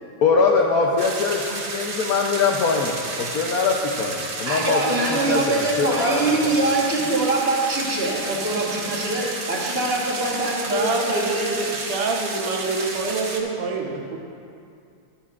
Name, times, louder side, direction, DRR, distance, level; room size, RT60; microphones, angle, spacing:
voice 1, 0.2-6.6, left 4 dB, 80° left, 0 dB, 0.8 m, -22 dB
sound 1, 1.0-13.4, right 3 dB, 50° right, 0.9 m, -32 dB
voice 2, 4.4-11.6, right 2 dB, 30° right, -3 dB, 1.3 m, -23 dB
voice 3, 10.7-14.2, right 3 dB, 85° right, 1 dB, 1.9 m, -26 dB
14.0 x 10.5 x 2.4 m, 2.5 s
omnidirectional pair, 2.4 m